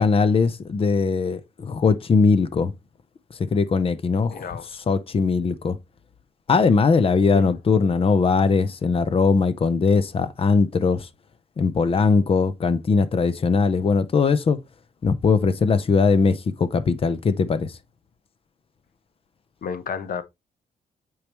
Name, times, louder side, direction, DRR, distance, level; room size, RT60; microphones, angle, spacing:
voice 1, 0.0-2.7 3.5-4.5 4.9-5.8 6.5-11.1 11.6-14.6 15.0-17.7, left 4 dB, 35° left, 0.7 m, -20 dB
voice 2, 4.3-4.7 7.3-7.5 19.6-20.2, left 7 dB, 60° left, 1.0 m, -31 dB
8.6 x 4.8 x 3.0 m
wide cardioid pair, 150°, 16 cm